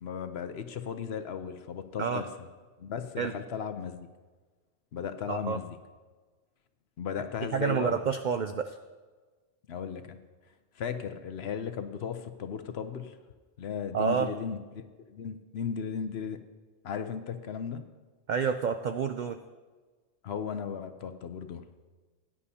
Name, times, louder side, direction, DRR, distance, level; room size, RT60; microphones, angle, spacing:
voice 1, 0.0-2.3 2.8-4.1 4.9-5.8 7.0-7.9 9.7-10.2 10.7-13.2 13.6-16.4 16.8-17.8 20.2-21.6, left 7 dB, 60° left, 9 dB, 0.9 m, -36 dB
voice 2, 5.3-5.6 7.5-8.8 13.9-14.3 18.3-19.4, right 6 dB, 75° right, 8 dB, 0.4 m, -29 dB
16.5 x 10.0 x 2.8 m, 1.3 s
omnidirectional pair, 1.3 m